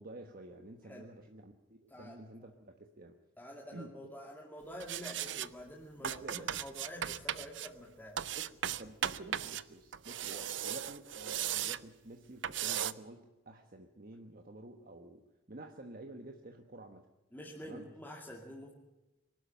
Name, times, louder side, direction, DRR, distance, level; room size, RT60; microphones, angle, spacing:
voice 1, 0.0-3.2 3.7-4.1 6.0-6.6 8.3-8.5 8.8-15.2 15.5-17.1 17.6-17.9, right 2 dB, 50° right, 5 dB, 1.3 m, -50 dB
voice 2, 1.9-2.2 3.4-8.3 10.3-10.5 17.3-18.7, equal, 10° left, -3 dB, 2.5 m, -48 dB
sound 1, 4.8-5.5 6.0-7.7 8.2-9.6 9.9-11.8 12.4-12.9, right 10 dB, 70° right, 0.7 m, -37 dB
23.5 x 12.5 x 9.0 m, 1.0 s
head